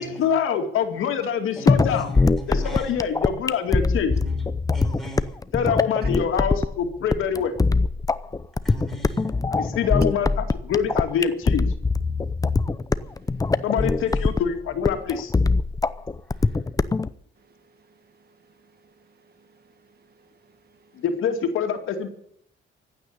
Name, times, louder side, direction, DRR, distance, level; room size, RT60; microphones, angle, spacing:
voice 1, 0.0-2.1 2.5-4.1 5.5-7.6 9.5-11.7 13.6-15.3 21.0-22.1, left 7 dB, 85° left, 5 dB, 2.4 m, -25 dB
voice 2, 1.6-2.9 4.1-4.4 4.7-5.3 8.6-9.3 13.9-14.3 16.5-16.6, right 3 dB, ahead, 1 dB, 5.6 m, -39 dB
sound 1, 1.7-17.1, left 3 dB, 15° left, 0.7 m, -23 dB
voice 3, 12.9-13.6 16.3-16.6 17.4-21.0, right 4 dB, 50° right, 10 dB, 1.5 m, -60 dB
15.0 x 9.2 x 8.5 m, 0.68 s
cardioid pair, 105°, 21 cm